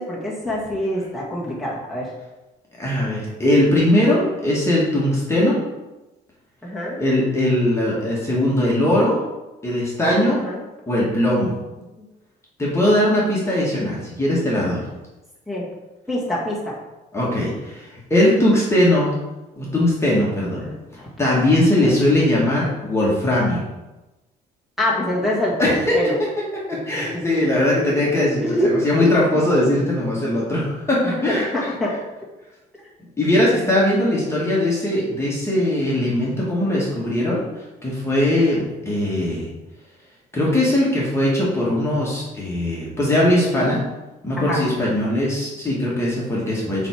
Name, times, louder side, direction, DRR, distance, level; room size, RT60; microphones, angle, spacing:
voice 1, 0.0-2.1 6.6-7.0 10.4-10.6 12.0-12.1 15.5-15.7 16.1-16.7 20.6-20.7 21.8-21.9 24.8-26.1 26.9-27.2 28.4-28.7 29.0-29.1 31.0-32.0 44.4-44.6, left 1 dB, ahead, -5 dB, 2.0 m, -25 dB
voice 2, 2.8-5.6 7.0-9.2 9.6-10.4 10.9-11.5 12.6-14.8 17.1-19.1 19.6-20.6 20.9-23.6 25.6-26.0 26.4-31.5 33.2-37.4 37.8-39.5 40.3-43.8 44.2-46.9, left 1 dB, 15° left, -6 dB, 1.9 m, -20 dB
7.6 x 3.6 x 4.6 m, 1.1 s
cardioid pair, 110°, 17 cm